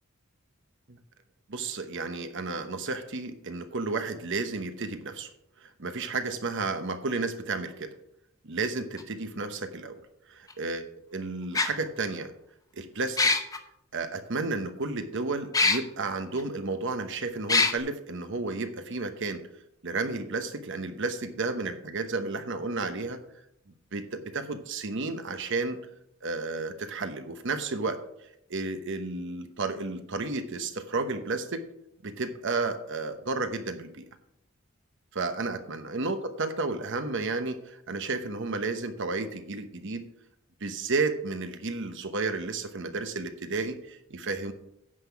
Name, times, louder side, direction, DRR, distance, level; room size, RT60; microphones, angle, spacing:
voice 1, 1.5-5.3 5.6-7.9 8.4-10.0 10.3-10.8 11.1-12.3 12.7-13.3 13.9-19.4 19.8-23.2 23.9-25.8 26.2-28.0 28.5-31.6 32.0-34.1 35.1-40.0 40.6-44.5, right 3 dB, 65° right, 8 dB, 1.0 m, -32 dB
sound 1, 9.0-9.1 10.5-10.6 11.5-11.7 13.2-13.6 15.5-15.8 16.4-16.5 17.5-17.7, left 3 dB, 15° left, 0.9 m, -22 dB
9.7 x 5.7 x 6.0 m, 0.78 s
head